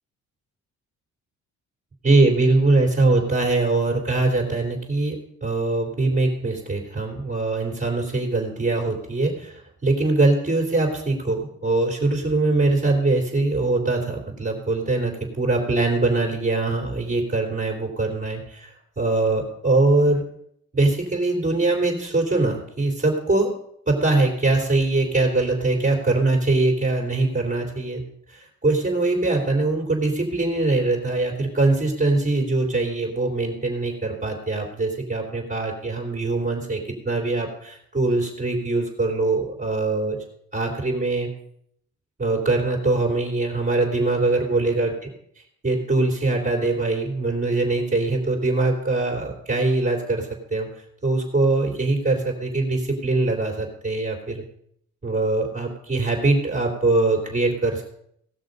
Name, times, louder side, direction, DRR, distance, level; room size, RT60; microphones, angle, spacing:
voice 1, 2.0-5.2 5.4-20.2 20.7-23.5 23.9-28.0 28.3-40.2 40.5-41.3 42.2-44.9 45.6-50.7 51.0-54.4 55.0-57.8, right 2 dB, 25° right, 0 dB, 3.3 m, -22 dB
17.5 x 6.2 x 5.3 m, 0.70 s
cardioid pair, 90°, 30 cm